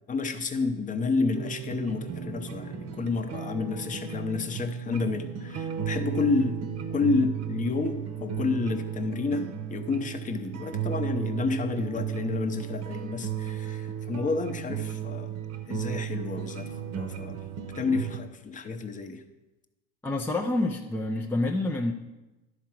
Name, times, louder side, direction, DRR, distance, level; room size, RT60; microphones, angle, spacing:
voice 1, 0.1-6.6 6.9-15.3 15.7-17.4 17.7-19.2, left 4 dB, 20° left, 8 dB, 0.7 m, -30 dB
sound 1, 1.3-18.2, right 9 dB, 50° right, 0.9 m, -35 dB
voice 2, 20.0-21.9, left 2 dB, 5° left, 0 dB, 0.4 m, -27 dB
11.5 x 4.6 x 6.0 m, 1.1 s
supercardioid pair, 125°, 35 cm